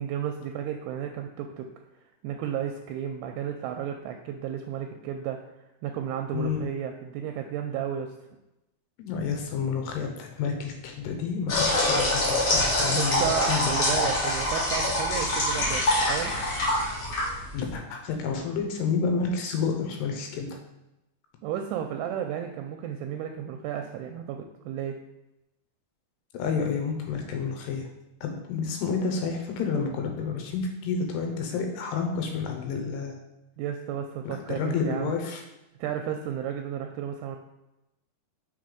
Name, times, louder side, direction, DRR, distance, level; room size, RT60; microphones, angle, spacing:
voice 1, 0.0-1.7 2.2-5.4 5.8-8.1 12.9-16.3 21.4-25.0 33.6-35.1 35.8-37.4, right 9 dB, 85° right, 4 dB, 2.4 m, -33 dB
voice 2, 6.3-6.6 9.0-14.0 17.5-20.6 26.3-27.8 28.2-33.2 34.5-35.4, left 5 dB, 80° left, 3 dB, 2.9 m, -30 dB
sound 1, 11.5-17.7, left 1 dB, 50° left, 2.0 m, -25 dB
6.6 x 4.0 x 4.9 m, 0.93 s
omnidirectional pair, 4.9 m